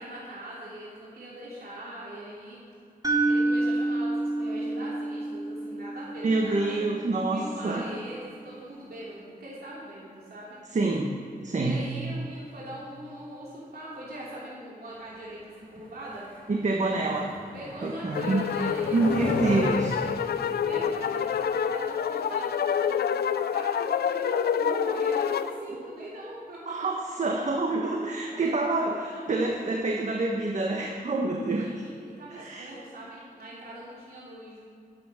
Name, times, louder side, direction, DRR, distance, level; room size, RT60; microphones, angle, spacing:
voice 1, 0.0-2.6 3.3-6.8 7.3-10.6 11.6-16.2 17.5-26.7 27.8-27.9 28.3-29.5 31.5-34.6, right 1 dB, 75° right, -7 dB, 3.0 m, -41 dB
sound 1, 3.0-7.1, right 2 dB, 20° right, 1.7 m, -28 dB
voice 2, 6.2-7.8 10.7-11.1 11.4-11.9 16.5-17.3 17.8-18.5 18.9-19.9 26.7-29.0 29.3-31.7 32.3-32.7, right 2 dB, 50° right, 1 dB, 1.2 m, -27 dB
Skateboard, 16.0-21.4, equal, 10° left, 2.9 m, -37 dB
sound 2, 18.1-25.5, left 8 dB, 90° left, 0.4 m, -27 dB
12.5 x 8.0 x 6.2 m, 2.5 s
wide cardioid pair, 80°, 16 cm